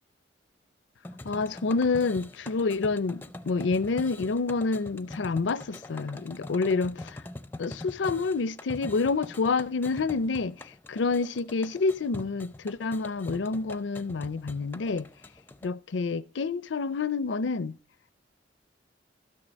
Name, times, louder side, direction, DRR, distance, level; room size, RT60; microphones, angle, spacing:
sound 1, 1.0-15.7, left 2 dB, 10° left, 0.5 m, -44 dB
voice 1, 1.2-7.2 7.6-15.1 15.6-17.8, left 4 dB, 80° left, 0.5 m, -28 dB
13.0 x 9.9 x 5.1 m
head